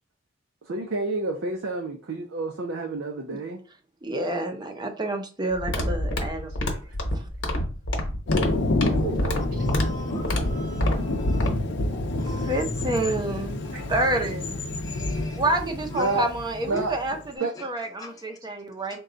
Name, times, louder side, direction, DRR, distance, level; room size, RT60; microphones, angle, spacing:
voice 1, 0.6-3.6 6.3-7.0 8.9-9.6 10.1-10.9 13.7-14.2 15.9-16.3 16.6-17.0 17.4-17.7, right 2 dB, 85° right, 0.6 m, -31 dB
voice 2, 4.0-6.8 7.1-7.2 12.5-13.6 13.9-14.6 15.4-19.0, right 2 dB, 25° right, 0.6 m, -28 dB
sound 1, 5.5-11.5, left 1 dB, 90° left, 1.0 m, -27 dB
Thunder, 8.3-17.3, left 2 dB, 65° left, 0.6 m, -28 dB
voice 3, 9.6-11.6 11.9-12.7 13.6-13.9 14.8-15.4 15.9-16.2 16.8-16.9 17.5-17.6 18.0-18.4 18.8-19.0, left 1 dB, 20° left, 0.5 m, -43 dB
3.8 x 2.3 x 3.8 m
head